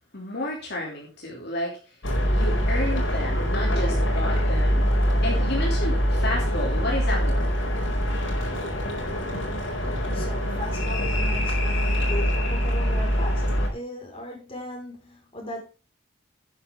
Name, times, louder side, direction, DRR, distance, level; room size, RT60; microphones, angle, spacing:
voice 1, 0.1-2.0 2.3-4.9 5.2-7.5, left 1 dB, 55° left, -2 dB, 3.1 m, -31 dB
sound 1, 2.0-13.7, equal, 75° left, 4.7 m, -24 dB
voice 2, 10.1-15.6, left 1 dB, 30° left, 0 dB, 5.3 m, -38 dB
11.5 x 9.7 x 3.8 m, 0.32 s
head